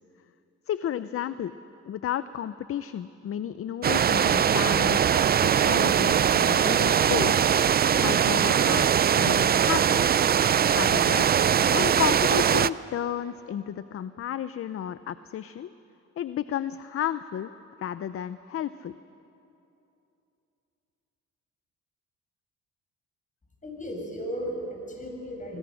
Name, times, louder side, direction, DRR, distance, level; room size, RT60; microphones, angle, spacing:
voice 1, 0.7-1.5 1.9-5.1 5.4-8.9 9.1-10.1 10.7-11.3 11.7-15.7 16.2-17.5 17.8-18.9, left 10 dB, 50° left, 13 dB, 0.6 m, -32 dB
sound 1, 3.8-12.7, right 8 dB, 30° right, 0.4 m, -21 dB
voice 2, 23.6-25.6, equal, 25° left, 1 dB, 6.6 m, -35 dB
26.5 x 20.0 x 6.4 m, 2.8 s
cardioid pair, 90°, 30 cm